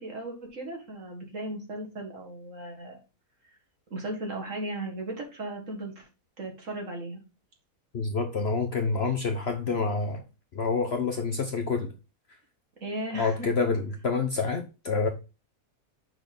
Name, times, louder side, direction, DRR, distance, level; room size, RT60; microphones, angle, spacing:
voice 1, 0.0-3.0 3.9-6.1 6.4-7.2 12.8-13.5, right 1 dB, 55° right, 2.1 m, -36 dB
voice 2, 7.9-10.2 10.5-11.9 13.1-15.1, left 4 dB, 50° left, 0.9 m, -27 dB
6.1 x 4.0 x 5.2 m
omnidirectional pair, 1.7 m